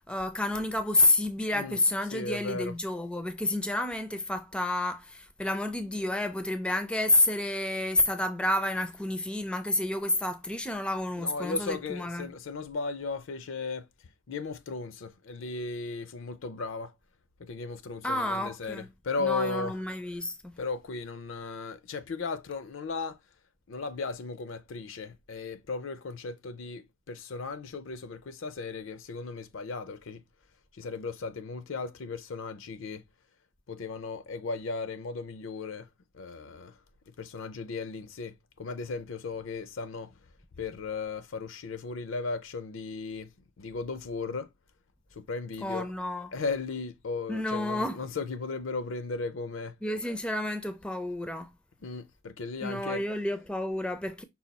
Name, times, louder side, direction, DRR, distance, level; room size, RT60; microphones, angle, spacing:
voice 1, 0.1-12.3 18.0-18.9 19.2-20.5 45.6-46.3 47.3-48.0 49.8-51.5 52.6-54.2, left 2 dB, 5° left, 0.4 m, -29 dB
voice 2, 2.1-2.7 11.2-13.9 14.3-16.9 17.4-19.7 20.6-23.2 23.7-30.2 30.7-33.0 33.7-35.9 36.1-36.8 37.2-40.1 40.6-43.3 43.6-44.5 45.1-45.9 46.3-49.7 51.8-53.0, left 4 dB, 65° left, 0.5 m, -36 dB
5.5 x 2.3 x 4.0 m
head